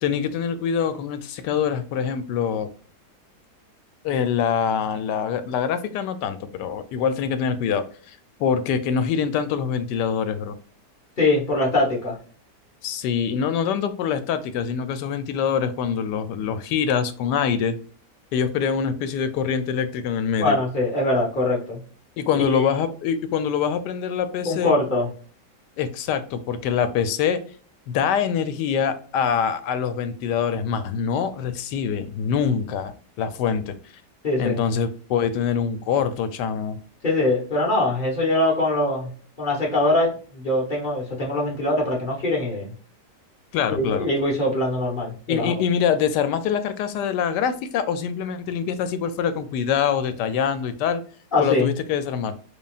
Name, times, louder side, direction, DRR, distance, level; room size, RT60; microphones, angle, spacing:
voice 1, 0.0-2.7 4.0-10.6 12.8-17.8 18.3-20.6 22.2-24.7 25.8-27.4 27.9-33.8 34.4-36.8 43.5-44.1 45.3-51.0 51.4-52.4, left 7 dB, 85° left, 11 dB, 1.2 m, -24 dB
voice 2, 11.2-12.2 20.4-21.8 22.4-22.6 24.4-25.1 34.2-34.6 37.0-39.1 39.4-42.7 43.8-45.5 51.3-51.7, left 2 dB, 35° left, -2 dB, 1.3 m, -22 dB
4.2 x 3.3 x 2.4 m, 0.43 s
omnidirectional pair, 1.8 m